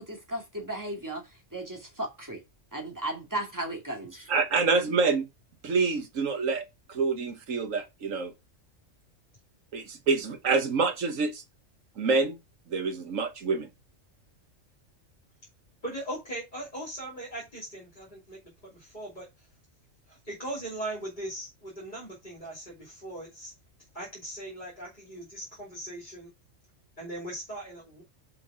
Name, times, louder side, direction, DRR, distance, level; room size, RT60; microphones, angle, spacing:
voice 1, 0.0-2.4 2.7-4.3, right 1 dB, 15° right, 2.4 m, -35 dB
voice 2, 4.3-5.2 5.6-8.3 9.7-11.4 12.0-12.4 12.7-13.7, right 4 dB, 90° right, 1.7 m, -27 dB
voice 3, 15.8-19.3 20.1-23.5 23.9-26.3 27.0-28.0, right 1 dB, 35° left, 2.9 m, -39 dB
5.6 x 5.3 x 4.8 m
omnidirectional pair, 1.3 m